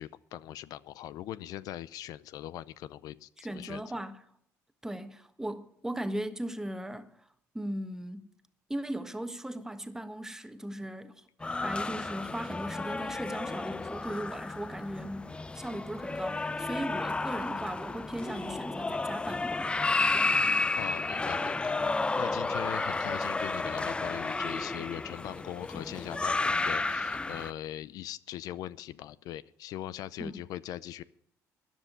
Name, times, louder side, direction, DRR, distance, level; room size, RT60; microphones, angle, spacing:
voice 1, 0.0-3.8 20.4-31.0, left 12 dB, 70° left, 0.5 m, -41 dB
voice 2, 3.4-4.2 4.8-7.1 7.5-8.3 8.7-19.7 20.1-20.3 30.2-30.4, right 1 dB, 5° right, 1.4 m, -38 dB
sound 1, 11.4-27.5, left 3 dB, 15° left, 0.4 m, -32 dB
13.5 x 10.0 x 6.7 m
cardioid pair, 95°, 7 cm